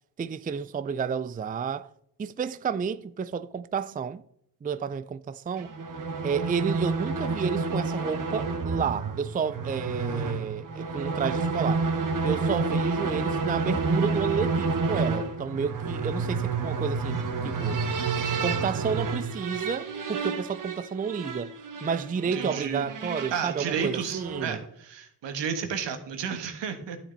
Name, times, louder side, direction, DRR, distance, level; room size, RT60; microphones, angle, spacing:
voice 1, 0.2-1.9 2.2-4.2 4.6-5.7 6.2-11.9 12.2-17.8 18.4-21.5 21.8-24.6, right 6 dB, 20° right, 0.4 m, -31 dB
sound 1, 5.6-24.6, right 4 dB, 45° right, 1.4 m, -29 dB
voice 2, 22.3-22.8 23.3-27.0, right 6 dB, 80° right, 1.7 m, -32 dB
11.5 x 7.2 x 4.1 m
supercardioid pair, 60°, 43 cm